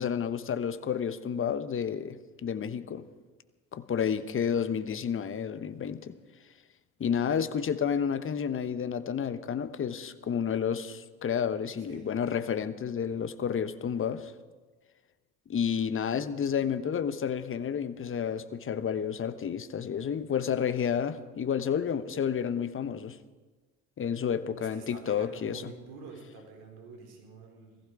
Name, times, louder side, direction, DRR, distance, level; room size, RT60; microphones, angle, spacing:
voice 1, 0.0-3.0 3.7-6.1 7.0-14.3 15.5-23.2 24.0-25.7, left 7 dB, 30° left, 12 dB, 1.0 m, -30 dB
voice 2, 24.6-27.8, right 5 dB, 65° right, 2 dB, 4.4 m, -47 dB
18.5 x 15.0 x 4.8 m, 1.3 s
hypercardioid pair, 65°, 40 cm